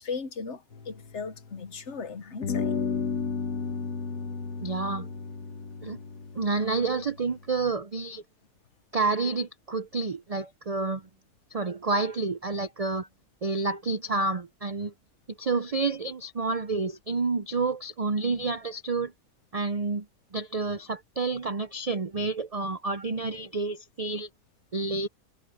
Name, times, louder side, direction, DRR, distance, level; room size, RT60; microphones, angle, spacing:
voice 1, 0.0-2.7, left 5 dB, 50° left, 1.3 m, -37 dB
sound 1, 0.7-1.9 2.4-7.6, left 5 dB, 90° left, 1.9 m, -34 dB
voice 2, 4.6-5.1 5.8-6.0 6.3-8.2 8.9-11.0 11.5-13.1 13.4-14.9 15.4-19.1 19.5-20.1 20.3-24.3 24.7-25.1, right 3 dB, 70° right, 0.3 m, -29 dB
omnidirectional pair, 1.6 m